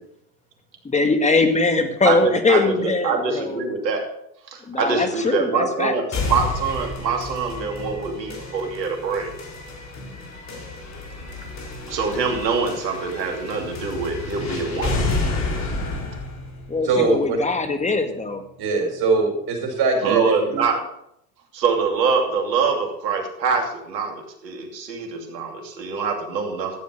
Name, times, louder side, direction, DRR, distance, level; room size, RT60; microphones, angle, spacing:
voice 1, 0.8-3.6 4.6-6.0 16.7-18.4, left 3 dB, 15° left, 7 dB, 1.8 m, -21 dB
voice 2, 2.0-4.0 4.5-9.4 11.9-15.0 20.0-20.8 21.5-26.7, right 5 dB, 90° right, 3 dB, 2.8 m, -24 dB
sound 1, 6.1-18.1, left 2 dB, 35° left, 3.8 m, -30 dB
voice 3, 16.8-17.4 18.6-20.2 20.5-20.6, right 4 dB, 50° right, 2 dB, 5.4 m, -21 dB
13.5 x 8.0 x 6.3 m, 0.76 s
hypercardioid pair, 95°, 49 cm